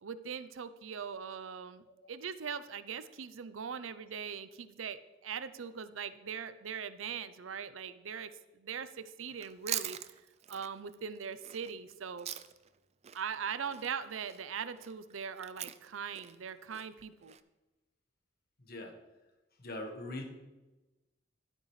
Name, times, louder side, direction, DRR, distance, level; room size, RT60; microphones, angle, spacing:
voice 1, 0.0-10.0 10.5-12.3 13.1-17.3, right 7 dB, 80° right, 13 dB, 0.6 m, -41 dB
Chewing mastication, 9.3-12.8 13.0-17.4, right 11 dB, 35° right, 0.4 m, -43 dB
voice 2, 19.6-20.2, left 1 dB, 50° left, 3 dB, 1.5 m, -41 dB
12.5 x 8.9 x 3.3 m, 1.1 s
head